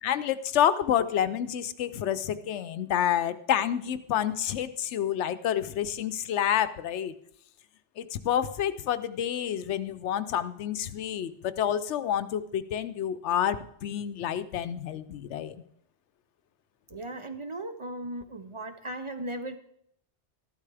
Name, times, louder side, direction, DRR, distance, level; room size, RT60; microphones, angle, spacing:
voice 1, 0.0-7.2 8.0-15.6, left 10 dB, 85° left, 13 dB, 0.9 m, -28 dB
voice 2, 16.9-19.6, right 1 dB, 35° right, 8 dB, 0.5 m, -37 dB
13.5 x 12.0 x 3.4 m, 0.72 s
omnidirectional pair, 1.1 m